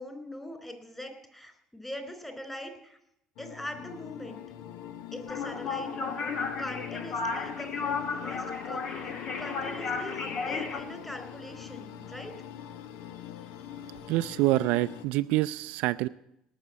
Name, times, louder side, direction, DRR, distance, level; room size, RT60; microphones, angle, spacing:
voice 1, 0.0-3.0 3.4-4.4 5.1-9.0 9.4-12.3, left 1 dB, 10° left, 7 dB, 4.2 m, -42 dB
sound 1, 3.4-15.1, left 10 dB, 70° left, 0.8 m, -42 dB
sound 2, 5.3-10.8, left 4 dB, 50° left, 2.0 m, -34 dB
voice 2, 14.1-16.1, right 18 dB, 70° right, 12 dB, 0.4 m, -26 dB
19.0 x 6.5 x 8.5 m, 0.77 s
hypercardioid pair, 65°, 2 cm